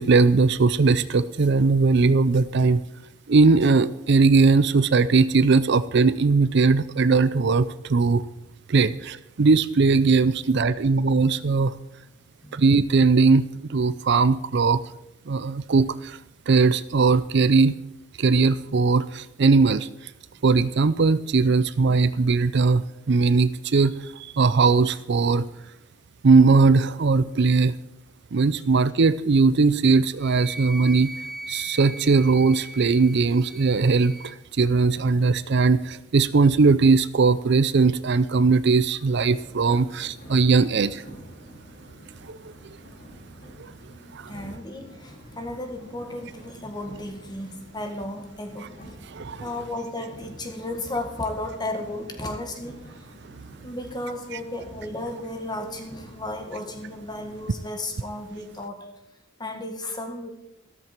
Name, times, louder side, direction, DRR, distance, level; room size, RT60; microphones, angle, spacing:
voice 1, 0.0-2.8 3.3-8.2 8.7-11.7 12.5-14.8 15.3-16.2 16.5-17.7 18.2-19.9 20.4-25.4 26.2-27.7 28.3-31.1 31.5-41.0 42.2-42.4 43.6-43.7 44.1-44.4 49.1-49.5 54.3-54.4, right 4 dB, 55° right, 15 dB, 0.5 m, -19 dB
Wind instrument woodwind instrument, 30.2-34.4, right 1 dB, ahead, 0.9 m, -39 dB
sound 1, 39.2-57.5, equal, 45° left, 5.5 m, -47 dB
voice 2, 44.3-48.8 49.4-52.8 53.6-58.9 59.4-60.3, left 1 dB, 20° left, 5 dB, 1.8 m, -34 dB
13.5 x 13.5 x 4.5 m, 0.84 s
head